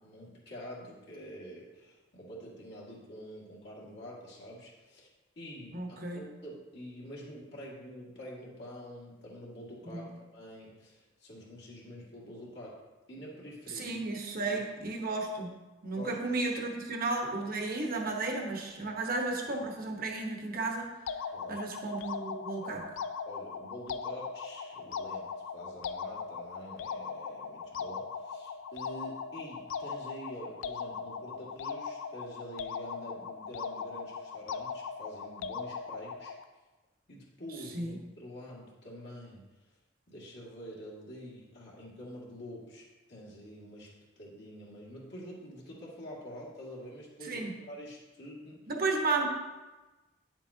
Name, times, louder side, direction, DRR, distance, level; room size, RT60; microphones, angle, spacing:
voice 1, 0.0-5.1 5.4-12.8 13.1-13.9 14.5-14.6 15.9-16.2 21.3-21.6 22.6-22.7 23.2-36.3 37.1-39.4 40.1-48.6, equal, 55° left, -5 dB, 2.0 m, -47 dB
voice 2, 5.7-6.2 10.1-10.2 13.7-15.5 15.8-20.9 21.5-22.8 37.7-38.0 47.2-47.5 48.7-49.3, right 3 dB, 45° right, 2 dB, 1.1 m, -33 dB
sound 1, 21.1-36.4, left 6 dB, 80° left, 0.4 m, -39 dB
9.7 x 7.3 x 2.8 m, 1.2 s
head